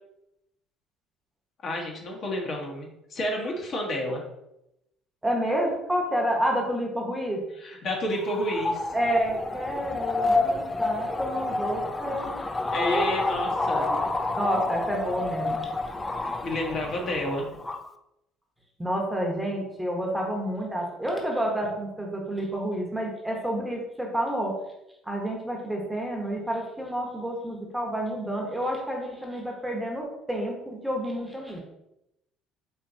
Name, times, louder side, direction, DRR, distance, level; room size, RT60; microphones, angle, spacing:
voice 1, 1.6-4.2 7.6-8.9 12.7-14.1 16.4-17.5, left 1 dB, 50° left, 0 dB, 1.1 m, -30 dB
voice 2, 5.2-7.4 8.9-12.3 12.8-13.1 13.6-14.0 14.4-15.6 18.8-24.6 25.0-31.6, equal, 5° right, 0 dB, 0.9 m, -29 dB
sound 1, 8.1-17.9, left 2 dB, 15° left, 0.3 m, -29 dB
4.4 x 2.8 x 2.6 m, 0.85 s
supercardioid pair, 95°, 0 cm